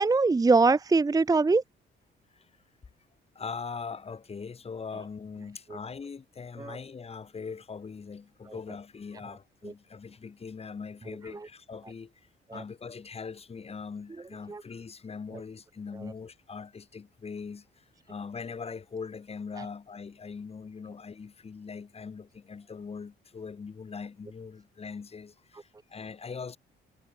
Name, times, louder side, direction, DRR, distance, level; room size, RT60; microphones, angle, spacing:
voice 1, 0.0-1.6 5.7-5.8 6.6-6.8 9.6-9.7 11.3-11.5 12.5-12.6 14.5-14.6 19.6-19.7, right 3 dB, 20° right, 0.6 m, -23 dB
voice 2, 3.3-12.1 12.5-26.6, left 5 dB, 30° left, 1.2 m, -41 dB
cardioid pair, 90°, 20 cm